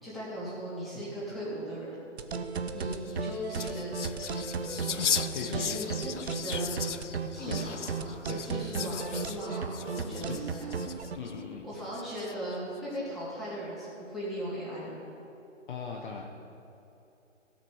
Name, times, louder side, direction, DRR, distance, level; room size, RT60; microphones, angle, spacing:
voice 1, 0.0-1.9 2.7-6.8 7.1-10.7 11.6-15.0, equal, ahead, -11 dB, 3.3 m, -38 dB
sound 1, 2.2-11.2, right 5 dB, 55° right, 0.9 m, -34 dB
sound 2, 2.9-11.3 11.9-12.5, left 7 dB, 65° left, 0.7 m, -37 dB
voice 2, 5.3-5.6 7.5-7.7 8.3-8.6 10.3-10.4 11.2-11.7 15.7-16.2, left 6 dB, 40° left, 0 dB, 1.0 m, -38 dB
17.0 x 6.4 x 6.4 m, 2.9 s
figure-of-eight pair, 140°, 38 cm